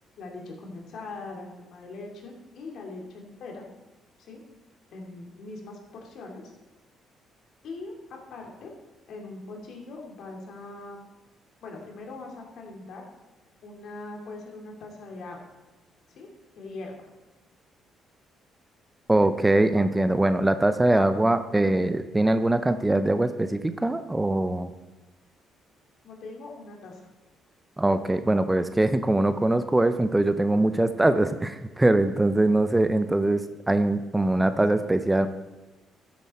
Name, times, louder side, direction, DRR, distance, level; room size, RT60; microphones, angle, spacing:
voice 1, 0.2-3.6 4.2-4.4 4.9-6.4 7.6-8.7 9.1-11.0 11.6-13.1 13.6-15.4 16.1-16.3 16.6-17.1 26.0-27.1, left 3 dB, 65° left, 0 dB, 2.5 m, -41 dB
voice 2, 19.1-24.7 27.8-35.3, right 2 dB, 10° right, 10 dB, 0.5 m, -22 dB
13.0 x 7.4 x 4.3 m, 1.1 s
cardioid pair, 110°, 0 cm